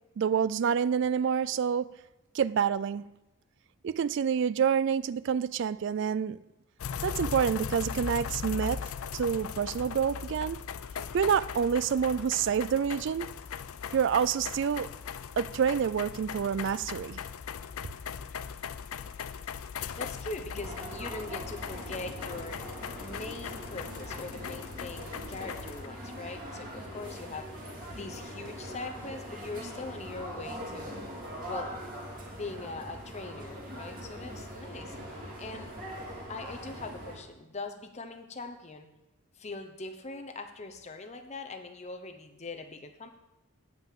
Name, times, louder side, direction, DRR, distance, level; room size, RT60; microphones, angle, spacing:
voice 1, 0.2-1.9 2.3-3.0 3.8-6.4 7.0-8.8 9.1-10.6 11.1-13.3 13.9-14.9 15.4-17.2, right 7 dB, 55° right, 0.3 m, -27 dB
sound 1, 6.8-25.9, left 7 dB, 70° left, 0.4 m, -39 dB
voice 2, 19.9-22.7 23.0-31.0 31.5-31.8 32.3-35.0 35.4-35.7 36.3-38.9 39.3-43.1, left 3 dB, 30° left, 0.7 m, -41 dB
sound 2, 20.5-37.2, equal, 35° right, 2.6 m, -42 dB
9.1 x 5.6 x 7.6 m
head